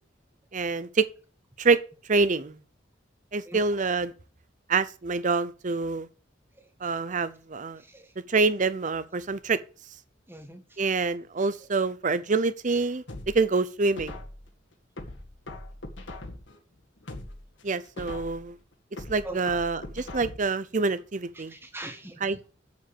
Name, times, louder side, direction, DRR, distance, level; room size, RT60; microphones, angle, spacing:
voice 1, 0.5-1.1 1.6-1.8 2.1-2.6 3.3-4.1 4.7-6.1 6.8-7.8 8.3-9.6 10.8-13.0 13.3-14.1 17.6-18.6 19.1-21.5 22.2-22.5, right 4 dB, 40° right, 0.7 m, -26 dB
voice 2, 7.8-8.1 10.3-10.6 19.2-19.4 21.3-22.3, right 2 dB, 10° right, 1.5 m, -42 dB
sound 1, 13.1-14.5 15.0-16.6 17.0-18.5 19.0-20.6 21.0-21.1, left 1 dB, 80° left, 2.1 m, -41 dB
7.4 x 7.3 x 7.0 m
head